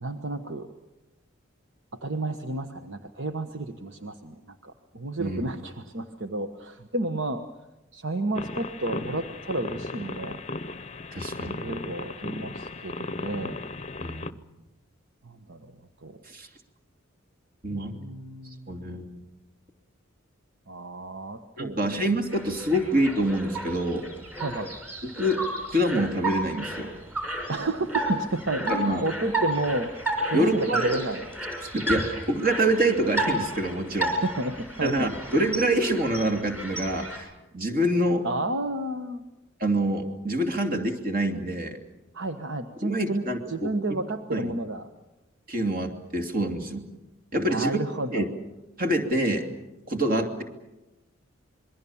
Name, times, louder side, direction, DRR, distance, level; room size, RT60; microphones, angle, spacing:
voice 1, 0.0-0.7 1.9-4.3 4.6-7.4 7.9-10.4 11.6-13.6 15.2-16.2 17.7-19.0 20.7-21.9 24.4-24.7 27.5-29.9 30.3-31.2 34.2-35.1 38.2-39.2 42.1-44.9 47.5-48.3, right 2 dB, 60° right, 7 dB, 1.2 m, -31 dB
sound 1, 8.3-14.3, left 2 dB, 30° left, 0.8 m, -36 dB
voice 2, 11.1-11.6 14.0-14.3 16.3-16.5 17.6-18.0 18.7-19.2 21.6-24.1 25.0-25.4 25.7-27.0 28.7-29.0 30.3-31.0 31.7-34.1 34.8-37.3 37.5-38.3 39.6-41.8 42.8-43.7 44.3-44.5 45.5-46.9 47.3-47.8 48.1-48.3 48.8-49.5 49.9-50.4, right 1 dB, 45° right, 5 dB, 2.8 m, -26 dB
sound 2, 22.3-37.2, right 1 dB, 10° right, 6.0 m, -33 dB
27.0 x 22.0 x 7.2 m, 1.0 s
head